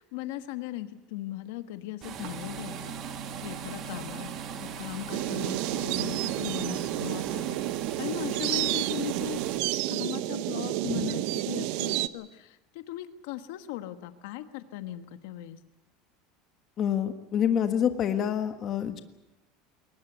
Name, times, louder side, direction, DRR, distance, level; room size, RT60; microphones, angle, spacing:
voice 1, 0.0-2.9 3.3-4.3 4.5-7.6 8.0-9.4 9.9-15.6, left 14 dB, 70° left, 9 dB, 1.3 m, -38 dB
sound 1, 2.0-7.5, right 2 dB, 5° right, 3.2 m, -49 dB
sound 2, 2.0-9.6, right 7 dB, 40° right, 1.3 m, -39 dB
sound 3, 5.1-12.1, right 16 dB, 55° right, 0.8 m, -30 dB
voice 2, 16.8-19.0, left 9 dB, 30° left, 8 dB, 1.5 m, -27 dB
22.5 x 19.5 x 8.1 m, 0.99 s
cardioid pair, 170°, 0 cm